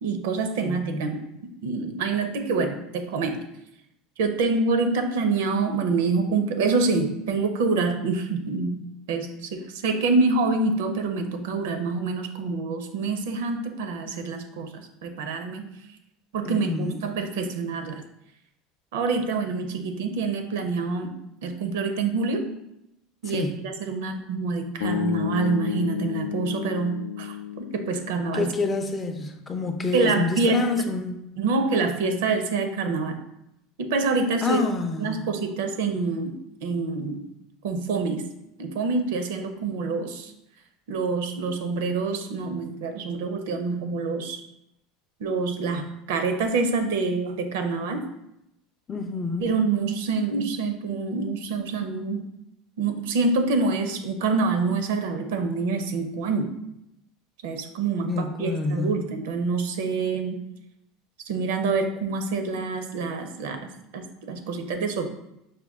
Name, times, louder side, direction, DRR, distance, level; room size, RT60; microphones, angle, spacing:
voice 1, 0.0-1.2 1.6-3.4 4.2-8.7 9.1-14.7 15.0-15.7 16.3-18.0 18.9-21.1 21.4-22.5 23.2-28.5 29.9-30.7 31.4-33.2 33.8-34.6 35.0-37.2 37.6-38.2 38.6-40.3 40.9-44.4 45.2-48.0 49.4-52.2 52.8-56.5 57.4-60.4 61.3-65.1, right 4 dB, 85° right, 6 dB, 0.6 m, -26 dB
voice 2, 0.6-1.3 16.5-17.0 23.3-23.5 28.3-31.2 34.4-35.4 48.9-49.5 58.1-59.0, left 3 dB, 20° left, 6 dB, 0.4 m, -28 dB
sound 1, 24.8-29.0, left 10 dB, 90° left, 0.4 m, -32 dB
5.1 x 2.2 x 3.5 m, 0.83 s
supercardioid pair, 135°, 0 cm